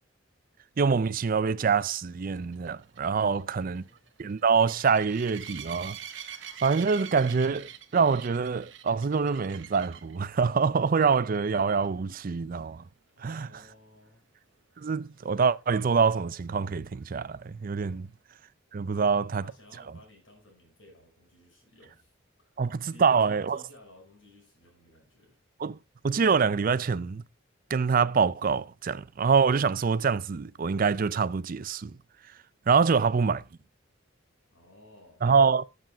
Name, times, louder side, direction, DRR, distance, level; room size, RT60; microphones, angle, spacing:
voice 1, 0.8-3.8 4.2-6.0 6.6-12.8 13.2-13.5 14.8-18.1 18.7-19.4 22.6-23.6 25.6-25.8 26.0-27.2 27.7-32.0 32.7-33.4 35.2-35.6, right 5 dB, 45° right, 0.4 m, -25 dB
sound 1, 2.2-10.2 10.7-11.1 11.3-11.4 11.8-11.9 15.5-15.6, right 9 dB, 65° right, 1.0 m, -44 dB
voice 2, 3.2-4.0 13.1-14.2 17.9-18.1 18.9-22.1 22.4-22.6 22.9-25.4 34.5-35.2, left 1 dB, 80° left, 5.5 m, -56 dB
7.9 x 7.6 x 4.7 m
head